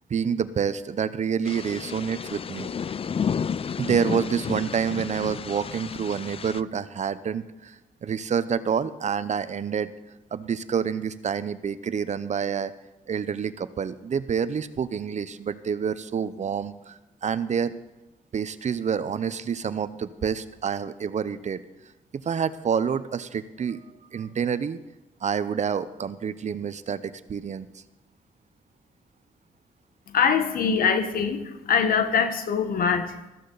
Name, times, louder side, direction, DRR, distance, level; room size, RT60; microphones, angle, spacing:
voice 1, 0.1-2.7 3.8-9.9 10.3-12.7 13.1-17.7 18.3-21.6 22.1-23.8 24.1-24.8 25.2-27.7, right 7 dB, 50° right, 15 dB, 0.7 m, -28 dB
sound 1, 1.5-6.6, left 7 dB, 40° left, 0.5 m, -31 dB
voice 2, 30.1-33.3, left 6 dB, 75° left, 8 dB, 1.4 m, -23 dB
15.0 x 13.5 x 4.1 m, 0.99 s
cardioid pair, 65°, 15 cm